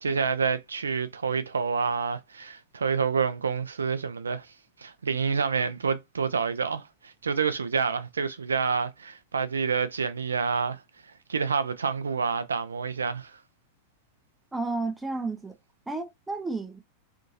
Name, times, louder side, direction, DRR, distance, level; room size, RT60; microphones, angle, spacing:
voice 1, 0.0-4.5 4.8-10.8 11.3-13.4, right 5 dB, 70° right, 0.3 m, -28 dB
voice 2, 14.5-15.6 15.9-16.8, right 3 dB, 10° right, 0.4 m, -32 dB
2.7 x 2.6 x 2.5 m
figure-of-eight pair, 90°, 0 cm